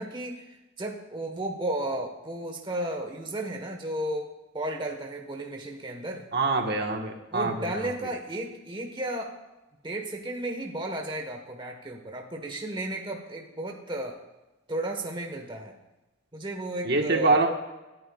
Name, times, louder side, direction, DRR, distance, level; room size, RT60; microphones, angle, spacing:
voice 1, 0.0-6.2 7.3-9.3 9.8-14.2 14.7-15.7 16.3-17.4, right 1 dB, 25° right, 2 dB, 1.3 m, -34 dB
voice 2, 6.3-7.5 16.8-17.5, right 3 dB, 55° right, 2 dB, 1.4 m, -24 dB
27.5 x 10.5 x 2.4 m, 1.1 s
head